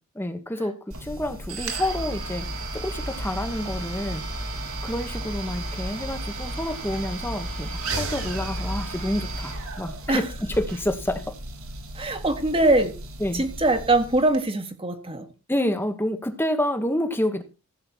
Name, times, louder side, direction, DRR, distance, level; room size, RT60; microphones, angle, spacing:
voice 1, 0.1-4.2 4.8-11.3 13.2-13.5 15.5-17.4, left 1 dB, 10° left, 1.2 m, -28 dB
sound 1, 0.9-14.4, right 2 dB, 85° right, 3.2 m, -33 dB
voice 2, 11.9-13.0 13.3-15.3, right 2 dB, 25° right, 1.5 m, -22 dB
15.5 x 7.8 x 4.4 m
head